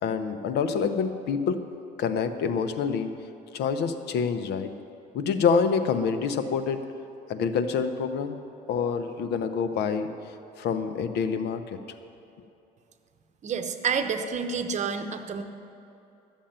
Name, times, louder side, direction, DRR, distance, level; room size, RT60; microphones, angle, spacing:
voice 1, 0.0-1.6 2.0-3.1 3.5-4.7 5.1-6.8 7.3-8.4 8.7-10.1 10.6-11.8, left 6 dB, 75° left, 9 dB, 0.9 m, -26 dB
voice 2, 13.4-15.4, right 6 dB, 45° right, 7 dB, 1.0 m, -29 dB
13.0 x 7.3 x 8.9 m, 2.8 s
cardioid pair, 110°, 17 cm